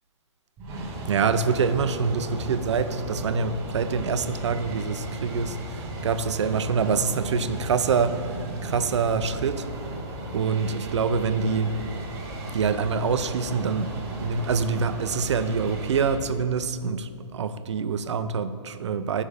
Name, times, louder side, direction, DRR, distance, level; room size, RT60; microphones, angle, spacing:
sound 1, 0.6-16.2, right 1 dB, 15° right, 1.0 m, -35 dB
voice 1, 1.1-9.7 10.3-11.8 12.5-19.2, right 5 dB, 75° right, 11 dB, 0.6 m, -26 dB
12.0 x 5.6 x 4.8 m, 2.3 s
hypercardioid pair, 165°, 15 cm